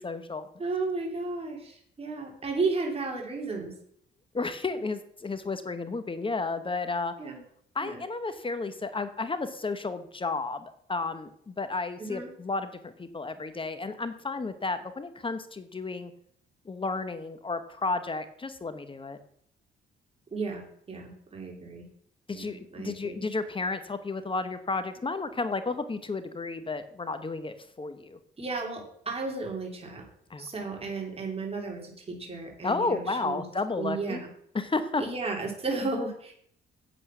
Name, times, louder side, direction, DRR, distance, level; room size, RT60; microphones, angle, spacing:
voice 1, 0.0-0.5 4.3-7.1 7.7-16.1 16.6-19.2 22.3-28.2 30.3-30.5 32.6-34.2 34.5-35.0, left 3 dB, 25° left, 11 dB, 1.1 m, -32 dB
voice 2, 0.6-3.7 7.2-7.4 7.8-8.0 12.0-12.3 20.3-21.8 22.3-23.2 28.4-30.0 30.4-33.5 33.8-34.3 35.0-36.3, right 3 dB, 30° right, 0 dB, 3.1 m, -33 dB
8.4 x 8.2 x 6.1 m, 0.65 s
cardioid pair, 90°, 20 cm